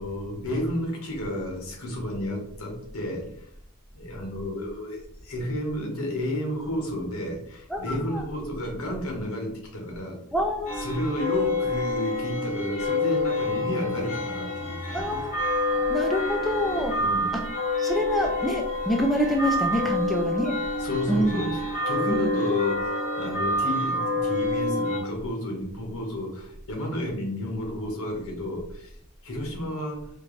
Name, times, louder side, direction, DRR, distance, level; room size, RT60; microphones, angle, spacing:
voice 1, 0.0-3.5 3.9-10.2 10.8-15.2 17.0-17.4 20.8-29.0 29.2-30.1, left 1 dB, 70° left, 1 dB, 1.2 m, -31 dB
voice 2, 7.7-8.2 10.3-10.8 14.9-15.3 15.9-17.0 17.3-17.4 17.8-20.6 21.1-21.6 22.1-22.3, equal, ahead, 1 dB, 0.3 m, -26 dB
sound 1, 10.7-25.0, left 2 dB, 35° left, 1.1 m, -28 dB
4.4 x 2.5 x 3.2 m, 0.69 s
head